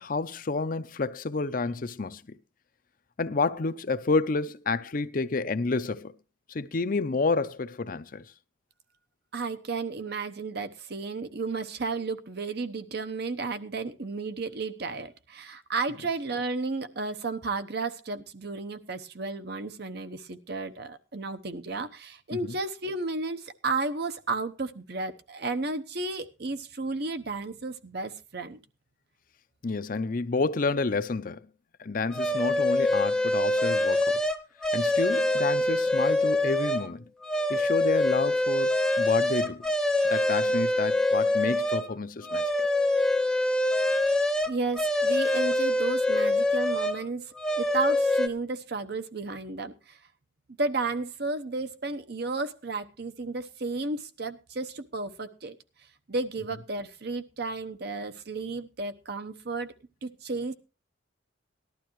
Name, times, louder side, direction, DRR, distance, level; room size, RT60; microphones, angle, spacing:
voice 1, 0.0-2.4 3.2-6.1 6.5-8.2 22.4-22.6 29.6-31.5 31.8-34.2 34.7-37.0 37.5-39.6 40.0-42.4, left 3 dB, 45° left, 0.6 m, -29 dB
voice 2, 9.3-28.6 44.5-50.0 50.6-55.5 56.1-59.7 60.0-60.5, right 3 dB, 60° right, 0.9 m, -33 dB
sound 1, 32.1-36.9 37.2-41.9 42.2-47.0 47.3-48.3, left 1 dB, 5° left, 0.8 m, -25 dB
18.5 x 12.0 x 3.1 m
head